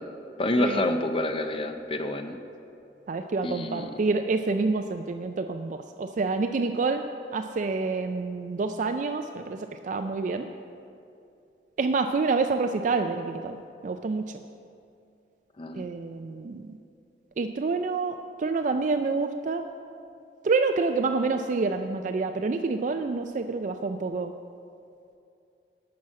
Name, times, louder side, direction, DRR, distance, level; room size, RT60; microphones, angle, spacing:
voice 1, 0.4-2.4 3.4-4.1 15.6-15.9, left 1 dB, 30° left, 7 dB, 0.6 m, -28 dB
voice 2, 3.1-7.0 7.3-10.5 11.8-14.3 15.8-16.7 17.4-19.6 20.4-24.3, right 4 dB, 45° right, 7 dB, 0.3 m, -28 dB
12.0 x 6.1 x 7.4 m, 2.6 s
head